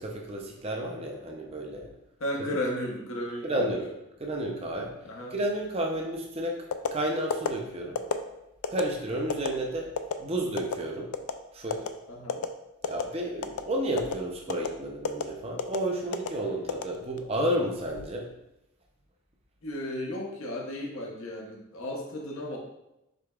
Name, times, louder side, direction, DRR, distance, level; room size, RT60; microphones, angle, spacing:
voice 1, 0.0-1.9 2.4-2.6 3.4-3.8 4.2-4.9 5.3-6.6 6.9-8.0 8.7-9.9 10.2-11.1 11.5-11.9 12.9-18.3, right 1 dB, 25° right, 1 dB, 0.6 m, -31 dB
voice 2, 2.2-3.9 5.0-5.3 12.1-12.4 19.6-22.6, left 1 dB, 65° left, -1 dB, 0.8 m, -34 dB
sound 1, 6.7-6.9 7.3-7.5 8.0-8.2 8.6-8.8 9.3-9.5 10.0-10.1 10.6-10.8 11.1-11.4 11.7-11.9 12.3-12.5 12.8-13.1 13.4-13.6 14.0-14.1 14.5-14.7 15.0-15.2 15.6-15.8 16.1-16.3 16.7-17.3 17.8-18.1, left 7 dB, 85° left, 0.3 m, -29 dB
5.0 x 4.0 x 2.3 m, 0.88 s
head